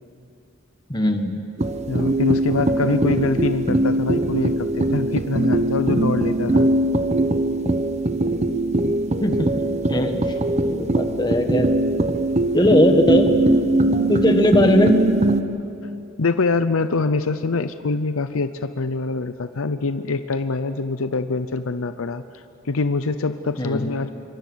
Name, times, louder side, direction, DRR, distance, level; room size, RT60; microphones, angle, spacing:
voice 1, 0.9-1.4 2.7-3.0 9.2-9.5 9.9-10.2 10.7-11.7 12.5-13.3 14.1-15.0 23.6-23.8, left 1 dB, 20° left, 6 dB, 1.6 m, -19 dB
sound 1, 1.6-15.4, right 1 dB, 35° right, 0.9 m, -21 dB
voice 2, 1.9-6.7 16.2-24.1, left 3 dB, 85° left, 11 dB, 0.7 m, -24 dB
26.0 x 24.0 x 6.3 m, 2.6 s
head